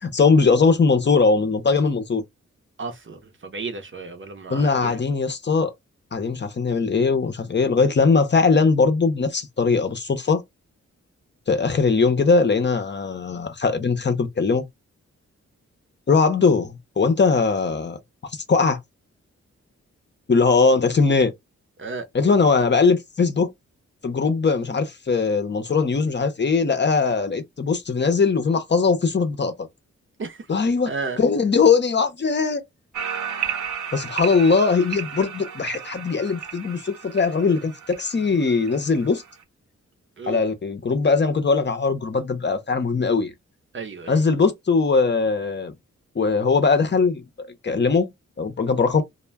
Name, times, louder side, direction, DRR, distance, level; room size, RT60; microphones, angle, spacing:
voice 1, 0.0-2.2 4.5-5.7 6.1-10.4 11.5-14.6 16.1-18.0 18.3-18.8 20.3-21.3 22.1-23.5 24.0-29.7 30.5-30.9 31.2-32.6 33.9-39.2 40.3-43.3 44.1-45.7 46.2-48.1 48.4-49.0, left 4 dB, 40° left, 0.6 m, -20 dB
voice 2, 2.8-5.0 21.8-22.0 30.2-30.5 30.9-31.2 40.2-40.4 43.7-44.2, right 4 dB, 45° right, 0.7 m, -33 dB
sound 1, 32.9-39.4, right 8 dB, 80° right, 0.9 m, -33 dB
2.2 x 2.1 x 3.3 m
cardioid pair, 80°, 29 cm